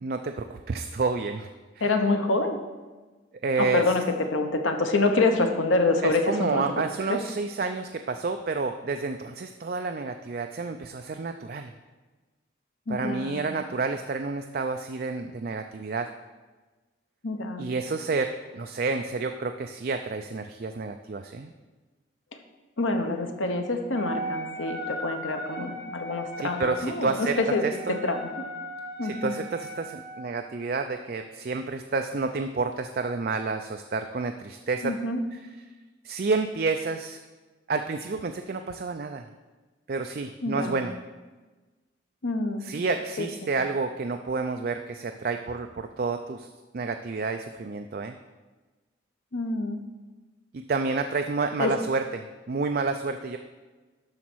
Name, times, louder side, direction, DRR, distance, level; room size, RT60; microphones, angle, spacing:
voice 1, 0.0-1.5 1.8-2.0 3.4-3.8 6.0-11.7 12.9-16.1 17.6-21.5 26.4-27.4 27.6-28.0 29.0-35.0 35.3-35.4 36.0-37.2 37.7-39.2 39.9-40.9 42.6-46.5 46.7-48.2 50.5-53.4, right 4 dB, 50° right, 6 dB, 0.4 m, -29 dB
voice 2, 1.8-2.6 3.6-4.0 4.3-6.6 7.1-7.2 12.9-13.5 17.2-17.7 22.8-28.4 29.0-29.3 34.8-35.2 40.4-40.8 42.2-42.7 43.4-43.5 49.3-49.8 51.6-51.7, left 3 dB, 90° left, 5 dB, 1.0 m, -26 dB
Wind instrument woodwind instrument, 23.9-30.4, right 1 dB, 60° left, 1.5 m, -37 dB
12.0 x 4.1 x 6.2 m, 1.3 s
head